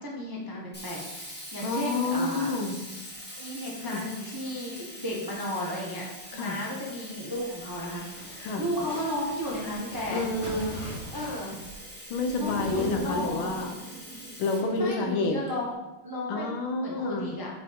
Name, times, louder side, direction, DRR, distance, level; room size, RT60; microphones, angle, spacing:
voice 1, 0.0-2.5 3.4-6.1 6.3-10.3 11.1-11.6 12.4-13.6 14.7-15.7 16.0-16.5 16.8-17.5, left 1 dB, 20° right, -3 dB, 0.6 m, -34 dB
Sink (filling or washing), 0.7-15.5, equal, 5° left, 1.6 m, -44 dB
voice 2, 1.6-2.8 3.8-4.0 6.3-6.6 8.4-8.6 10.1-10.9 12.1-13.7 14.4-15.4 16.3-17.3, left 3 dB, 75° left, 5 dB, 1.6 m, -29 dB
sound 1, 7.5-13.6, equal, 30° left, 2.7 m, -41 dB
sound 2, 12.2-15.4, right 4 dB, 80° right, 0.7 m, -41 dB
8.1 x 5.5 x 3.6 m, 1.1 s
omnidirectional pair, 2.4 m